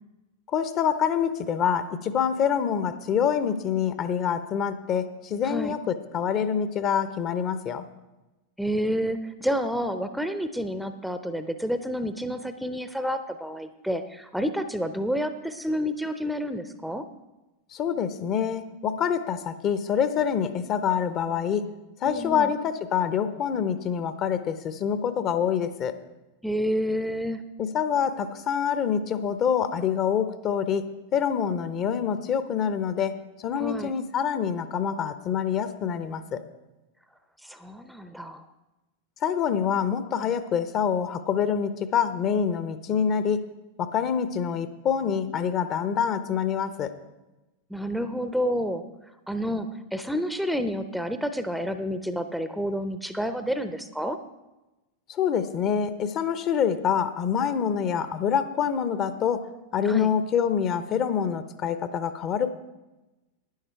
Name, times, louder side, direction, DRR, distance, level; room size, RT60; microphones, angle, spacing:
voice 1, 0.5-7.8 17.7-21.7 22.0-26.0 27.6-36.4 39.2-43.4 43.8-46.9 55.1-59.5 59.7-62.5, left 7 dB, 35° left, 11 dB, 0.7 m, -26 dB
voice 2, 8.6-17.0 22.0-22.5 26.4-27.4 33.6-33.9 37.4-38.5 47.7-48.8 49.3-54.2 59.8-60.1, equal, ahead, 9 dB, 0.6 m, -29 dB
11.5 x 10.0 x 4.5 m, 1.0 s
figure-of-eight pair, 90°, 0 cm